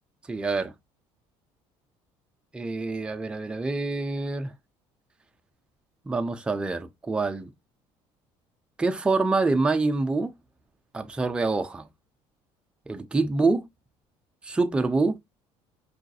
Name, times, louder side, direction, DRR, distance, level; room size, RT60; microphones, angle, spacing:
voice 1, 0.3-0.7 2.5-4.5 6.1-7.5 8.8-10.3 10.9-11.9 12.9-13.7 14.4-15.2, right 3 dB, 10° right, 0.4 m, -26 dB
4.7 x 2.5 x 2.2 m
cardioid pair, 150°, 11 cm